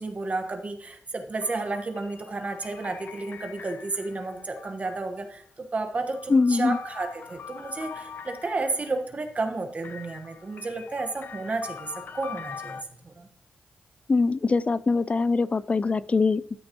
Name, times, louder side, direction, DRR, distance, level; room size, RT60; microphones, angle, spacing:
voice 1, 0.0-13.3, right 3 dB, 45° right, 1.4 m, -32 dB
sound 1, 1.4-5.2 5.9-9.0 9.8-12.8, left 6 dB, 70° left, 0.7 m, -43 dB
voice 2, 6.3-6.8 14.1-16.6, left 4 dB, 40° left, 0.4 m, -23 dB
13.0 x 6.4 x 3.0 m
cardioid pair, 65°, 3 cm